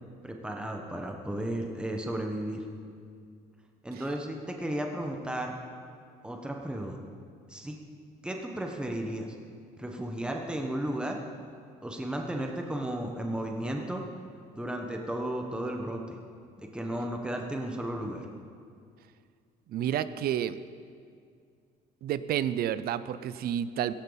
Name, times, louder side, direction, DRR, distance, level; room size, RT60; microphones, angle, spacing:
voice 1, 0.2-2.6 3.8-5.5 6.2-7.0 7.5-7.8 8.2-9.3 9.8-11.2 11.8-14.0 14.5-16.0 16.6-18.2, right 1 dB, 5° right, 2 dB, 1.3 m, -34 dB
voice 2, 19.7-20.6 22.0-23.9, right 10 dB, 65° right, 15 dB, 0.6 m, -30 dB
16.0 x 15.5 x 4.1 m, 2.2 s
cardioid pair, 110°, 17 cm